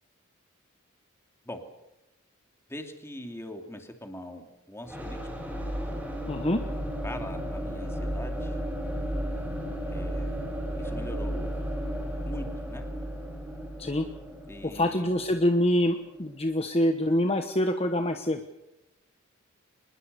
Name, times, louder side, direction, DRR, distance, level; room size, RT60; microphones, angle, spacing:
voice 1, 2.7-5.2 7.0-8.6 9.9-11.5 12.2-12.8 14.5-15.1, left 1 dB, 10° left, 4 dB, 2.7 m, -42 dB
sound 1, 4.8-16.6, equal, 5° right, 6.1 m, -34 dB
voice 2, 6.3-6.6 13.8-14.1 14.6-18.4, left 1 dB, 30° left, 6 dB, 1.2 m, -25 dB
25.0 x 21.0 x 6.9 m, 0.94 s
head